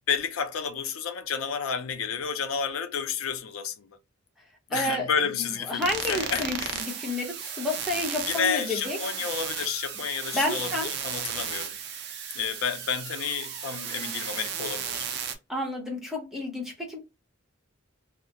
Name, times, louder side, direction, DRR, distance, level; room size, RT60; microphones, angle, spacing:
voice 1, 0.1-3.9 4.7-6.8 8.3-11.8 12.3-15.0, left 7 dB, 90° left, 0.5 m, -31 dB
voice 2, 4.7-9.0 10.3-10.9 15.5-17.0, left 1 dB, ahead, 0.8 m, -30 dB
sound 1, 5.8-15.4, right 8 dB, 55° right, 0.5 m, -34 dB
2.3 x 2.0 x 2.8 m
head